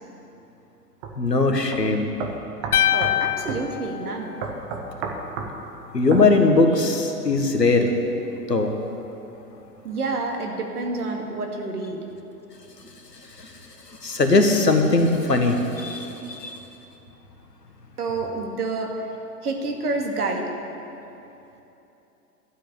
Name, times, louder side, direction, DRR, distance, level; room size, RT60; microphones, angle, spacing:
sound 1, 1.0-1.2 1.7-1.8 2.2-3.2 3.5-3.6 4.4-5.5 6.1-6.3, right 5 dB, 10° right, 0.4 m, -31 dB
voice 1, 1.2-2.1 5.9-7.9 8.5-8.7 13.4-13.5 14.0-16.6, left 3 dB, 85° left, 5 dB, 1.6 m, -20 dB
sound 2, 2.7-5.0, left 12 dB, 65° left, 0.6 m, -25 dB
voice 2, 2.9-4.3 9.8-12.0 18.0-19.1 19.4-20.5, right 3 dB, 70° right, 2 dB, 2.2 m, -28 dB
12.5 x 7.5 x 9.5 m, 2.9 s
figure-of-eight pair, 110°, 48 cm